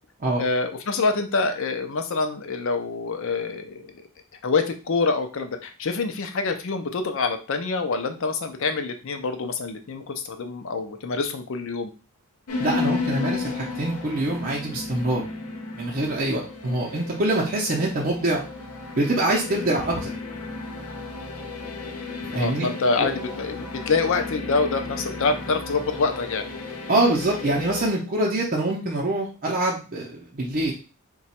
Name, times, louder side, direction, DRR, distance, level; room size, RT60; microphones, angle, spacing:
voice 1, 0.4-4.1 4.4-11.9 16.6-16.8 22.3-26.4, left 4 dB, 60° left, 7 dB, 0.5 m, -26 dB
sound 1, 12.5-27.9, left 4 dB, 85° left, 0.9 m, -33 dB
voice 2, 12.6-15.2 15.8-18.4 18.9-20.1 22.3-22.7 23.0-23.1 26.9-30.7, right 1 dB, 40° right, -2 dB, 0.6 m, -24 dB
2.9 x 2.3 x 4.2 m, 0.34 s
head